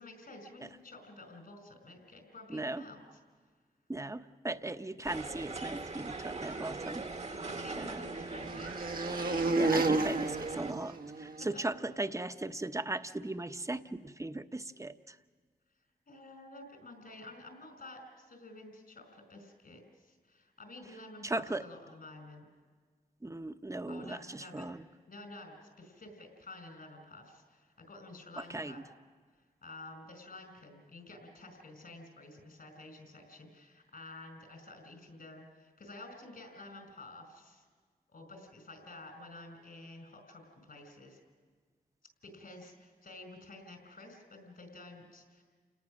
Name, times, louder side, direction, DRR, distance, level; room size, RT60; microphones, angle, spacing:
voice 1, 0.0-3.0 7.3-9.1 16.1-21.3 21.6-22.5 23.9-24.7 25.1-28.8 29.6-37.6 38.1-41.2 42.2-45.4, left 2 dB, 70° left, 6 dB, 4.8 m, -51 dB
voice 2, 2.5-2.9 3.9-7.1 7.8-8.0 9.5-15.2 21.2-21.6 23.2-24.8 28.4-28.9, right 2 dB, 20° right, 9 dB, 0.9 m, -38 dB
sound 1, 5.1-10.7, right 3 dB, 45° right, 1.3 m, -41 dB
sound 2, 6.9-11.5, right 2 dB, 70° right, 1.2 m, -33 dB
29.0 x 18.5 x 6.3 m, 1.6 s
cardioid pair, 55°, 16 cm